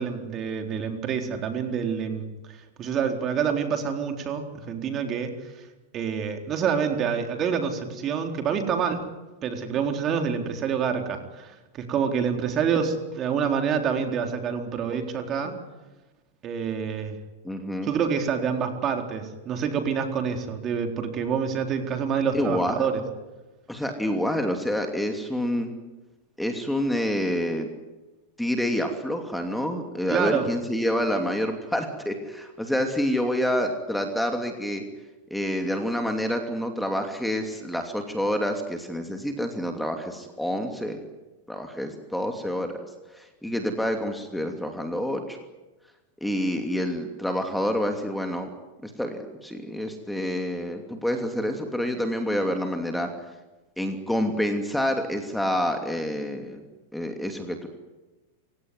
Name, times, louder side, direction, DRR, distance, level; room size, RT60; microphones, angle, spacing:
voice 1, 0.0-5.5 5.9-9.0 9.4-15.6 16.4-17.2 17.8-22.9 30.1-30.5, right 7 dB, 35° right, 5 dB, 4.0 m, -27 dB
voice 2, 17.4-17.9 22.3-22.9 23.7-25.7 26.4-27.7 28.4-34.8 35.3-41.0 41.5-42.8 43.1-45.4 46.2-48.5 48.8-53.1 53.8-56.6 56.9-57.7, equal, ahead, 5 dB, 2.8 m, -28 dB
28.0 x 17.5 x 9.6 m, 1.1 s
hypercardioid pair, 125°, 0 cm